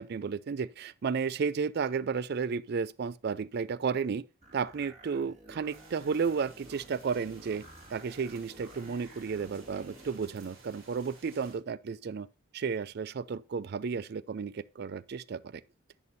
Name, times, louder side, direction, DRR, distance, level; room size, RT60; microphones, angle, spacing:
voice 1, 0.0-4.2 4.5-7.6 7.9-12.3 12.5-15.6, right 5 dB, 55° right, 0.4 m, -33 dB
sound 1, 4.4-10.2, right 1 dB, 35° right, 2.0 m, -53 dB
sound 2, 5.7-11.6, right 3 dB, 85° right, 3.7 m, -56 dB
11.0 x 8.6 x 2.7 m
head